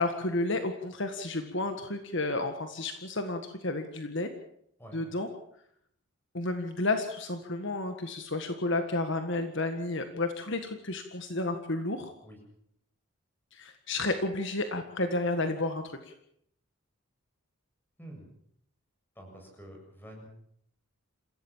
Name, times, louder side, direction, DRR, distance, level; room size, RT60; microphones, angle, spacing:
voice 1, 0.0-4.3 4.9-5.3 6.3-12.1 13.5-16.1, left 2 dB, 55° left, 7 dB, 1.7 m, -31 dB
voice 2, 19.2-20.3, right 1 dB, 10° left, 2 dB, 7.2 m, -47 dB
27.5 x 16.0 x 7.3 m, 0.69 s
head